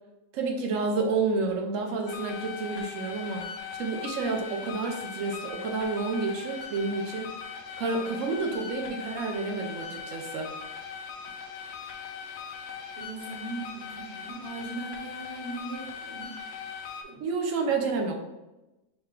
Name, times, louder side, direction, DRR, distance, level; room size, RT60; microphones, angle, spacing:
voice 1, 0.3-3.5 3.8-7.3 7.8-10.5 17.2-18.2, right 4 dB, 60° right, 2 dB, 1.0 m, -29 dB
sound 1, 2.1-17.0, left 6 dB, 70° left, 0.7 m, -40 dB
voice 2, 13.0-16.3 17.0-17.2, right 3 dB, 40° right, -3 dB, 1.2 m, -39 dB
5.6 x 2.2 x 3.6 m, 1.0 s
omnidirectional pair, 1.8 m